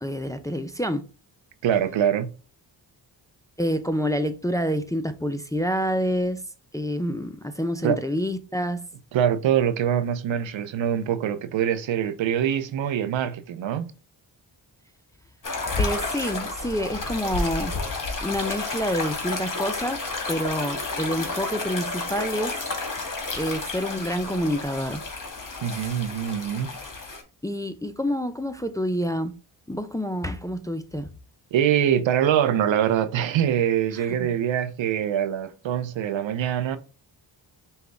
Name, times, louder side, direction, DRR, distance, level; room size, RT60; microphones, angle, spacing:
voice 1, 0.0-1.1 3.6-6.4 6.7-8.8 15.8-17.7 18.2-20.0 20.3-22.6 23.4-25.0 27.4-29.3 29.7-31.1 34.2-34.3, equal, 10° left, 0.4 m, -27 dB
voice 2, 1.6-2.3 7.8-8.0 9.1-13.9 25.6-26.7 31.5-36.8, right 9 dB, 75° right, 0.7 m, -24 dB
sound 1, 15.4-27.2, left 3 dB, 40° left, 1.5 m, -31 dB
5.4 x 2.3 x 3.3 m
cardioid pair, 50°, 47 cm